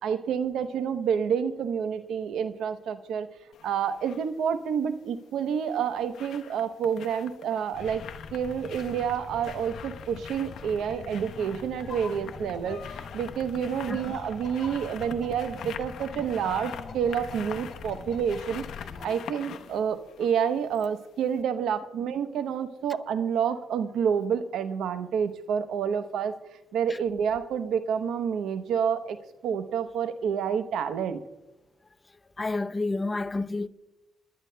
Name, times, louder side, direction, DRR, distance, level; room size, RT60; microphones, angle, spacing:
voice 1, 0.0-3.3 3.6-8.0 8.3-18.7 19.0-26.4 26.7-29.2 29.4-31.2, right 7 dB, 85° right, 0.8 m, -28 dB
sound 1, 3.5-4.3 5.5-21.0 21.4-21.5, left 8 dB, 85° left, 0.8 m, -45 dB
sound 2, 7.7-19.1, left 5 dB, 65° left, 2.6 m, -43 dB
voice 2, 32.4-33.7, left 3 dB, 25° left, 0.6 m, -29 dB
30.0 x 11.5 x 2.2 m
cardioid pair, 85°, 0 cm